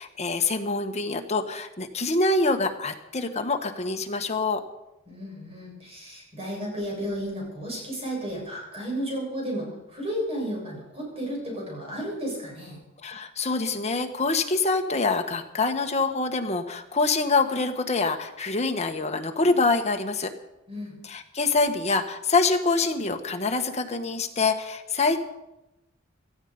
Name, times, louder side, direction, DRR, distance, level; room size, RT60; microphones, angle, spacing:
voice 1, 0.0-4.6 13.0-20.3 21.1-25.2, left 3 dB, 35° left, 5 dB, 1.4 m, -25 dB
voice 2, 5.1-12.8 20.7-21.0, equal, 30° right, -2 dB, 7.1 m, -33 dB
17.5 x 14.5 x 5.3 m, 0.91 s
head